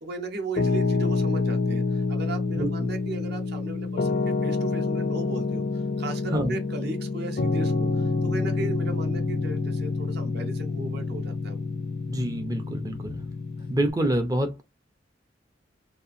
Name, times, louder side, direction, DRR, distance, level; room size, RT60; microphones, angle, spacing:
voice 1, 0.0-11.6, right 3 dB, 55° right, 0.7 m, -36 dB
Piano, 0.6-13.9, left 3 dB, 55° left, 0.5 m, -27 dB
voice 2, 2.6-2.9 6.3-6.5 12.1-13.2 13.7-14.6, right 1 dB, 20° right, 0.4 m, -27 dB
2.7 x 2.3 x 2.4 m
head